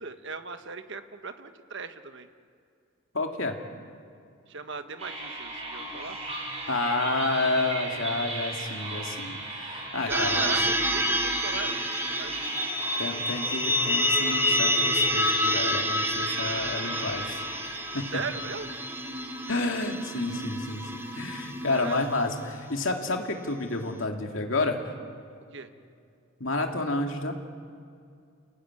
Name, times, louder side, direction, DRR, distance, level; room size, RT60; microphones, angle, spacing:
voice 1, 0.0-2.3 4.5-6.2 10.1-12.3 18.1-18.8 21.7-22.0 25.5-25.7, right 4 dB, 60° right, 8 dB, 1.4 m, -37 dB
voice 2, 3.1-3.5 6.7-10.6 13.0-17.4 17.9-18.0 19.5-20.8 21.1-24.8 26.4-27.3, left 2 dB, 65° left, 3 dB, 2.7 m, -30 dB
sound 1, 5.0-20.2, right 2 dB, 30° right, 7.2 m, -37 dB
sound 2, 10.1-22.6, left 1 dB, 10° right, 1.5 m, -28 dB
29.5 x 18.5 x 9.8 m, 2.4 s
head